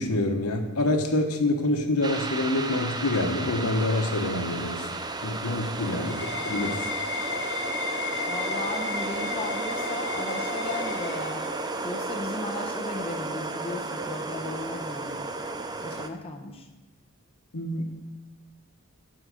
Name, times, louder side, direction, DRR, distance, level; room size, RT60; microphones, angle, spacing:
voice 1, 0.0-4.9 5.2-6.1 6.4-6.9 17.5-17.8, left 2 dB, 80° left, 5 dB, 1.1 m, -26 dB
sound 1, 2.0-16.1, right 3 dB, 20° right, 0.6 m, -33 dB
sound 2, 5.4-11.8, left 4 dB, 55° left, 1.2 m, -34 dB
voice 2, 8.3-11.4 11.8-15.3 15.8-16.7, left 2 dB, 25° left, 1 dB, 1.0 m, -36 dB
12.0 x 5.4 x 6.3 m, 1.2 s
head